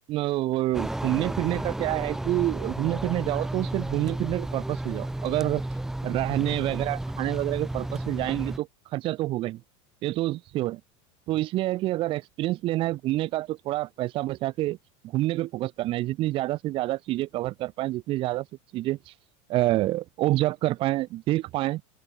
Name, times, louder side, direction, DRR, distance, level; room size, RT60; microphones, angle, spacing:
voice 1, 0.1-5.6 6.0-9.6 10.0-10.8 11.3-14.8 15.0-18.5 18.7-19.1 19.5-21.8, right 16 dB, 35° right, 1.3 m, -27 dB
sound 1, 0.7-8.6, right 1 dB, 5° right, 0.6 m, -32 dB
open air
supercardioid pair, 170°, 16 cm